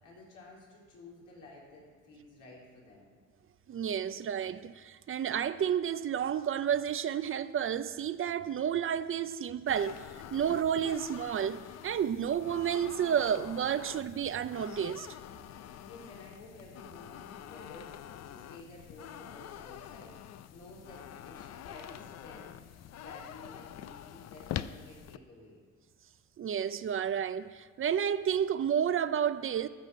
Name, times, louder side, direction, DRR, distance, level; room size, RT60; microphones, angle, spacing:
voice 1, 0.0-3.1 15.6-22.5 23.0-25.6, left 2 dB, 80° left, 3.7 m, -52 dB
voice 2, 3.7-15.1 26.4-29.7, right 8 dB, 45° right, 0.5 m, -31 dB
sound 1, 9.7-25.2, left 10 dB, 60° left, 0.5 m, -45 dB
14.0 x 6.4 x 6.9 m
cardioid pair, 90°, 30 cm